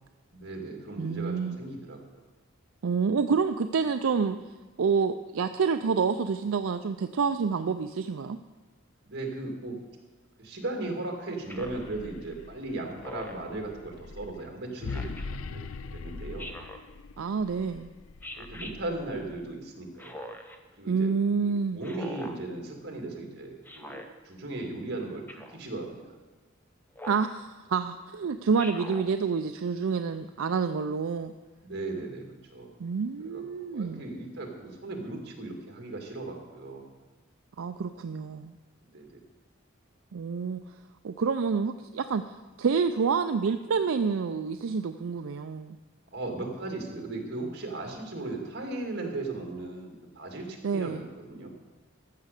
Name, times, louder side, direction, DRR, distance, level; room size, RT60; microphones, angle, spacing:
voice 1, 0.3-2.0 9.0-9.8 10.4-15.6 15.9-16.5 18.3-20.3 20.8-21.1 21.4-24.0 24.2-26.1 31.6-32.3 32.5-32.7 33.2-33.4 33.7-36.8 38.9-39.2 46.1-51.5, right 2 dB, 50° right, 2 dB, 2.1 m, -37 dB
voice 2, 1.0-1.6 2.8-4.4 4.8-8.4 17.2-17.9 20.9-21.8 27.1-31.3 32.8-34.0 37.6-38.5 40.1-40.6 41.0-45.8 50.6-51.0, right 5 dB, 75° right, 8 dB, 0.4 m, -28 dB
sound 1, 11.4-19.5, left 4 dB, 85° left, 0.5 m, -42 dB
Speech synthesizer, 11.5-11.9 13.0-13.5 14.9-15.2 16.4-16.9 18.2-18.7 20.0-20.6 21.8-22.4 23.7-24.1 25.3-25.6 27.0-27.3 28.6-29.1, left 1 dB, 10° left, 0.8 m, -42 dB
14.0 x 6.6 x 6.6 m, 1.2 s
head